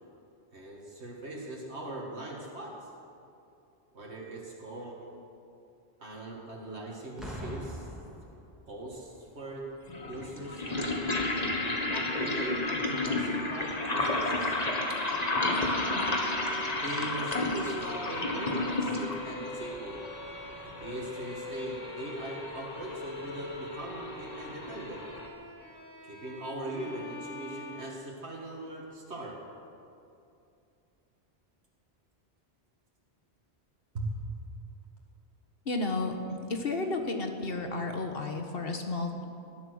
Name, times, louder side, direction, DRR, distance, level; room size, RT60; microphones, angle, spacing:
voice 1, 0.5-2.9 3.9-5.2 6.0-7.9 8.7-9.6 10.0-11.0 11.6-14.6 16.8-20.0 20.6-25.1 26.0-29.4 33.9-34.1, right 1 dB, 80° right, -2 dB, 2.2 m, -40 dB
Boom, 7.2-8.9 9.8-10.1, equal, ahead, 3.0 m, -42 dB
sound 1, 8.9-9.0 9.9-25.3, left 2 dB, 35° left, 1.6 m, -32 dB
Bowed string instrument, 12.8-28.6, left 2 dB, 80° left, 4.3 m, -45 dB
voice 2, 35.6-39.2, left 2 dB, 60° left, 5 dB, 1.5 m, -32 dB
19.0 x 11.5 x 6.4 m, 2.6 s
omnidirectional pair, 1.1 m